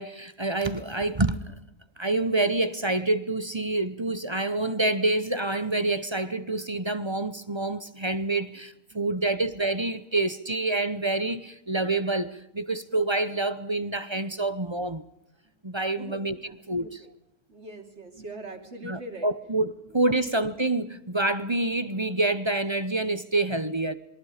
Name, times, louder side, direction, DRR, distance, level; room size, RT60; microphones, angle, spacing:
voice 1, 0.0-1.6 2.0-12.3 12.5-15.0 15.6-16.3 16.7-16.9 18.8-23.9, right 2 dB, 20° right, 0.9 m, -27 dB
voice 2, 8.9-9.3 15.4-15.6 16.0-17.1 17.5-20.3, right 1 dB, 50° right, 3.3 m, -44 dB
27.5 x 22.0 x 5.1 m
omnidirectional pair, 1.5 m